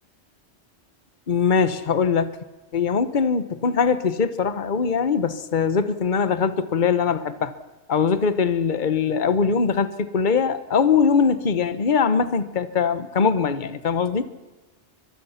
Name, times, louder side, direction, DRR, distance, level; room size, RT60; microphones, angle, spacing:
voice 1, 1.3-2.4 2.7-7.5 7.9-14.3, left 6 dB, 45° left, 13 dB, 1.2 m, -21 dB
23.5 x 22.0 x 5.8 m, 1.2 s
omnidirectional pair, 1.2 m